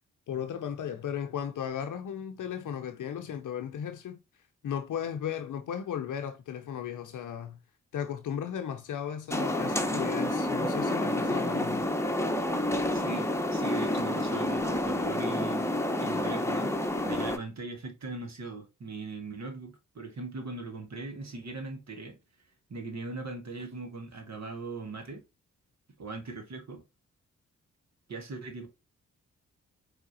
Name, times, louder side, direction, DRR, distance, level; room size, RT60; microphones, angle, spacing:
voice 1, 0.3-4.2 4.6-7.6 7.9-11.9, left 8 dB, 65° left, 0.7 m, -35 dB
sound 1, 9.3-17.4, left 1 dB, 10° left, 1.0 m, -29 dB
voice 2, 12.9-15.7 16.0-22.2 22.7-25.2 26.0-26.8 28.1-28.7, right 3 dB, 55° right, 1.6 m, -39 dB
4.7 x 3.5 x 2.8 m
supercardioid pair, 40°, 33 cm